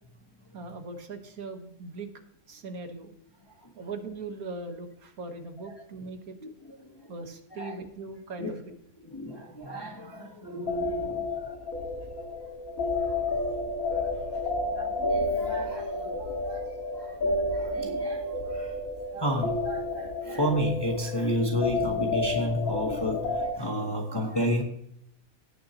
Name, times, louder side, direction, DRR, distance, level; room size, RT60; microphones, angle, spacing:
voice 1, 0.5-2.1 2.5-3.1 3.8-6.4 7.1-8.8 10.6-10.7 11.0-11.3 13.9-14.5, right 3 dB, 85° right, 6 dB, 1.8 m, -40 dB
voice 2, 6.7-7.0 7.5-7.8 8.4-8.5 9.0-11.6 13.0-13.2 14.6-16.7 17.0-18.7 19.1-24.6, equal, 20° left, 0 dB, 1.3 m, -32 dB
sound 1, 10.7-23.5, left 2 dB, 75° left, 2.3 m, -31 dB
17.5 x 6.6 x 2.9 m, 0.72 s
omnidirectional pair, 1.5 m